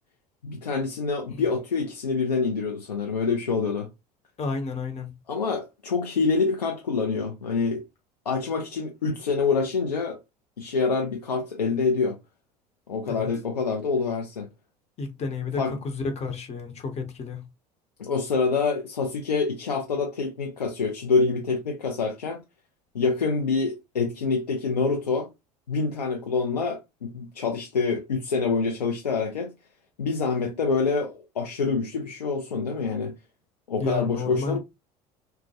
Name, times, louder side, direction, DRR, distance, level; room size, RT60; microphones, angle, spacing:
voice 1, 0.4-3.9 5.3-7.8 8.3-10.2 10.6-12.2 12.9-14.5 15.6-15.7 18.0-22.4 22.9-25.3 25.7-29.5 30.0-33.1 33.7-34.6, left 4 dB, 85° left, 0.5 m, -26 dB
voice 2, 4.4-5.1 13.0-13.3 15.0-17.4 33.8-34.6, left 4 dB, 30° left, 0.8 m, -31 dB
2.2 x 2.1 x 2.7 m
figure-of-eight pair, 65°, 20 cm